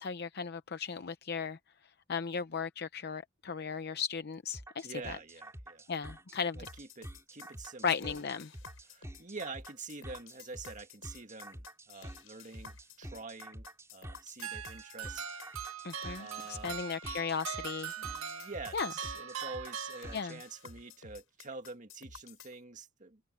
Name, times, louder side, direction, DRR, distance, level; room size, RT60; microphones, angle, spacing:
voice 1, 0.0-1.6 2.1-5.2 5.9-6.7 7.8-8.5 15.8-17.9 18.7-18.9 20.1-20.4, left 6 dB, 50° left, 0.7 m, -36 dB
sound 1, 4.5-20.4, right 1 dB, 15° right, 3.4 m, -49 dB
voice 2, 4.8-5.9 6.6-8.3 8.9-13.7 13.9-15.4 16.2-16.8 18.0-23.2, right 3 dB, 40° right, 1.8 m, -47 dB
sound 2, 6.6-22.6, left 4 dB, 80° left, 5.8 m, -53 dB
sound 3, 14.4-20.6, right 8 dB, 85° right, 1.8 m, -42 dB
open air
head